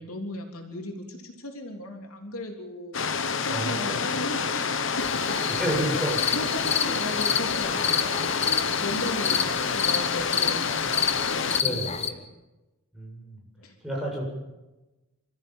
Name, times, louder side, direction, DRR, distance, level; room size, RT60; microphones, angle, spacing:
voice 1, 0.0-3.0 3.4-12.3 13.6-13.8, left 1 dB, 80° left, 2 dB, 3.5 m, -37 dB
sound 1, 2.9-11.6, left 6 dB, 55° left, 1.1 m, -28 dB
voice 2, 3.5-4.0 5.5-6.2 11.6-11.9 12.9-13.4 13.8-14.2, right 1 dB, ahead, -3 dB, 7.7 m, -30 dB
sound 2, 5.0-12.1, left 7 dB, 30° left, 1.1 m, -29 dB
27.5 x 14.5 x 7.5 m, 1.1 s
head